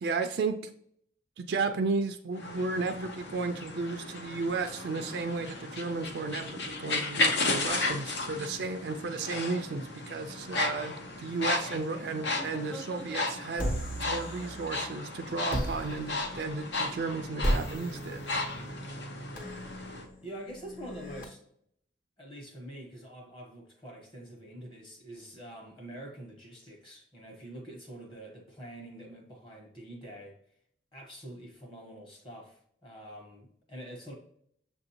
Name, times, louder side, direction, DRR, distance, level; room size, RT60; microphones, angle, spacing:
voice 1, 0.0-0.7 1.4-13.7 13.9-18.2, right 4 dB, 65° right, 6 dB, 0.4 m, -33 dB
sound 1, 2.3-20.0, left 2 dB, 70° left, 0.7 m, -35 dB
sound 2, 6.4-6.7 8.0-8.9 10.0-10.5 11.9-13.6 14.4-14.8 16.0-16.5, equal, 5° left, 0.5 m, -50 dB
sound 3, 13.6-14.9 15.5-21.2, equal, 50° left, 1.1 m, -36 dB
voice 2, 20.2-21.4 22.2-30.4 30.9-34.1, right 1 dB, 25° left, 1 dB, 1.1 m, -46 dB
6.8 x 2.6 x 2.8 m, 0.68 s
head